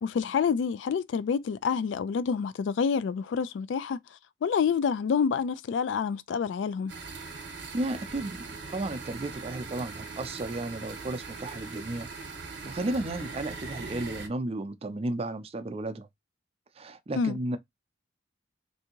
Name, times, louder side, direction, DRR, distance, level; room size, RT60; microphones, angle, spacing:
voice 1, 0.0-4.0 4.4-6.9 17.2-17.4, left 6 dB, 75° left, 0.3 m, -27 dB
sound 1, 6.9-14.3, right 4 dB, 65° right, 0.9 m, -41 dB
voice 2, 7.7-12.1 12.6-16.1 16.8-17.6, right 2 dB, 35° right, 0.5 m, -33 dB
3.4 x 2.7 x 2.8 m
head